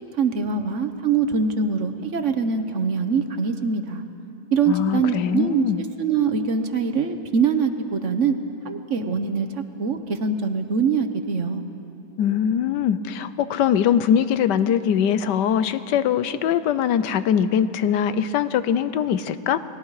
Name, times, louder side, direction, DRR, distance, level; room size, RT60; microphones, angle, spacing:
voice 1, 0.1-4.0 4.5-8.3 8.6-9.5 9.8-11.6, right 5 dB, 50° right, 8 dB, 1.1 m, -23 dB
voice 2, 4.7-5.8 12.2-19.6, left 9 dB, 90° left, 13 dB, 1.4 m, -22 dB
29.5 x 20.5 x 4.8 m, 2.8 s
omnidirectional pair, 1.8 m